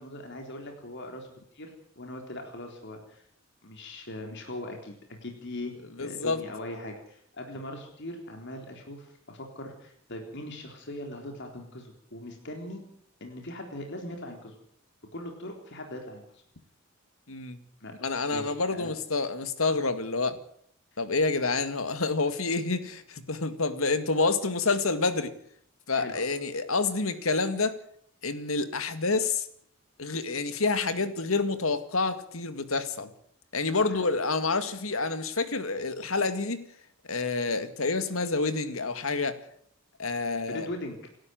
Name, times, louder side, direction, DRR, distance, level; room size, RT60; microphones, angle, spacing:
voice 1, 0.0-3.3 3.6-5.7 6.0-12.8 13.2-14.5 15.1-16.4 17.8-17.9 18.3-18.9 26.0-26.2 33.7-34.0 40.5-41.1, left 1 dB, 60° left, 3 dB, 3.8 m, -40 dB
voice 2, 6.0-6.4 17.3-17.6 18.0-20.4 21.0-25.3 25.9-27.8 28.2-29.5 30.0-33.1 33.5-36.6 37.0-39.4 40.0-40.7, left 3 dB, 90° left, 11 dB, 2.1 m, -28 dB
27.5 x 12.5 x 7.8 m, 0.65 s
head